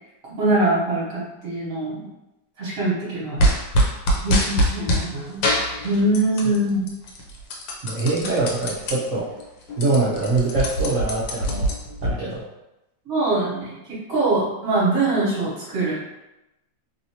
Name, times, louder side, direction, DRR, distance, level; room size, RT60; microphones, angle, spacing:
voice 1, 0.4-2.0 2.6-3.4 4.2-5.4 5.8-6.9 13.1-15.9, right 2 dB, 45° right, -9 dB, 1.4 m, -23 dB
sound 1, 3.4-5.1 5.4-6.6 6.9-8.9 9.4-9.5 9.7-12.1, equal, 90° left, 1.4 m, -22 dB
voice 2, 7.8-9.3 9.8-11.7 12.0-12.5, right 3 dB, 70° right, -7 dB, 0.7 m, -23 dB
3.2 x 2.7 x 2.8 m, 0.93 s
omnidirectional pair, 2.0 m